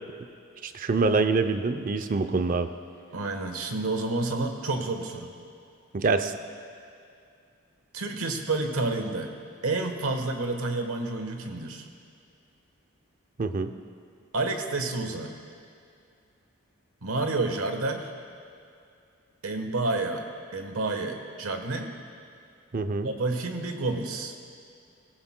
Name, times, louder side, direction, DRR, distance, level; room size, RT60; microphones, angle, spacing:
voice 1, 0.6-2.7 5.9-6.4 13.4-13.7 22.7-23.1, right 3 dB, 40° right, 10 dB, 0.5 m, -25 dB
voice 2, 3.1-5.3 7.9-9.3 9.6-11.9 14.3-15.3 17.0-18.1 19.4-20.2 20.5-21.9 23.0-24.4, right 2 dB, 85° right, 5 dB, 1.2 m, -29 dB
18.5 x 16.0 x 2.2 m, 2.4 s
head